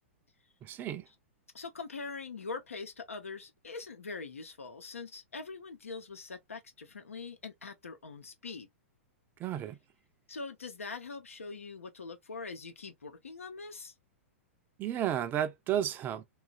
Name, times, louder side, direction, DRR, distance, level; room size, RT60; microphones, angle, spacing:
voice 1, 0.6-1.0 9.4-9.8 14.8-16.2, right 10 dB, 25° right, 0.4 m, -32 dB
voice 2, 1.5-8.7 10.3-13.9, left 4 dB, 80° left, 0.8 m, -43 dB
3.0 x 2.4 x 2.4 m
figure-of-eight pair, 105°, 7 cm